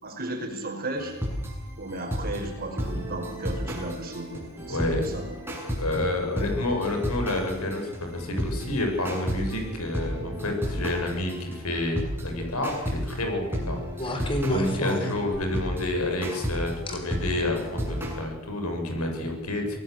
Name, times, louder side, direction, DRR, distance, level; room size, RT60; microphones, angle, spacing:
voice 1, 0.0-1.2 1.8-5.3 14.9-15.1, right 1 dB, 45° right, 4 dB, 5.3 m, -35 dB
sound 1, 1.0-13.2 13.5-18.2, equal, 10° right, 7.5 m, -33 dB
voice 2, 4.7-5.0 5.7-19.8, left 1 dB, 75° left, 3 dB, 7.0 m, -29 dB
sound 2, 12.2-12.6 14.0-15.7 16.9-17.0 17.8-18.0, left 1 dB, 25° left, 3.6 m, -30 dB
26.5 x 18.5 x 8.1 m, 0.99 s
head